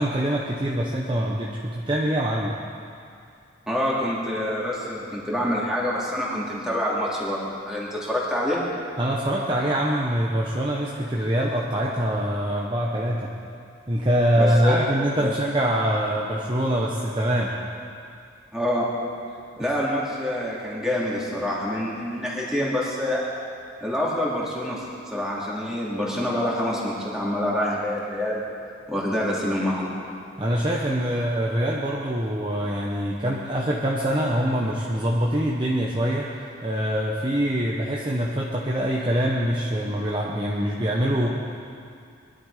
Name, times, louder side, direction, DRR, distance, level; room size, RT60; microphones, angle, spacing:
voice 1, 0.0-2.5 9.0-13.3 13.9-17.5 19.6-19.8 30.4-41.3, equal, 25° right, -4 dB, 1.2 m, -24 dB
voice 2, 3.7-8.6 14.3-14.8 15.2-15.3 18.5-18.8 19.6-23.2 23.8-28.4 28.9-29.9, left 1 dB, 5° right, -6 dB, 3.1 m, -26 dB
22.0 x 12.0 x 5.1 m, 2.4 s
head